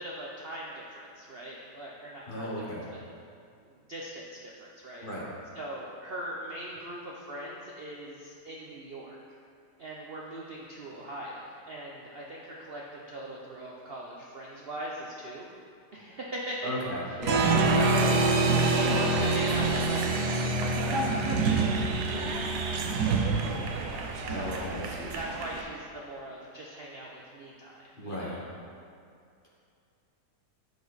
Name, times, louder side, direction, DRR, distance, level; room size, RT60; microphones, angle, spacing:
voice 1, 0.0-2.8 3.6-5.1 5.5-9.2 9.8-15.5 15.9-17.2 17.7-23.2 23.7-24.6 25.1-28.4, right 1 dB, 50° right, -3 dB, 0.7 m, -40 dB
voice 2, 2.3-2.9 5.0-5.3 16.6-17.6 24.2-25.1 28.0-28.4, equal, 35° left, -4 dB, 1.1 m, -35 dB
Applause, 17.2-25.6, right 3 dB, 70° right, 1.3 m, -26 dB
11.0 x 5.1 x 4.0 m, 2.4 s
omnidirectional pair, 1.8 m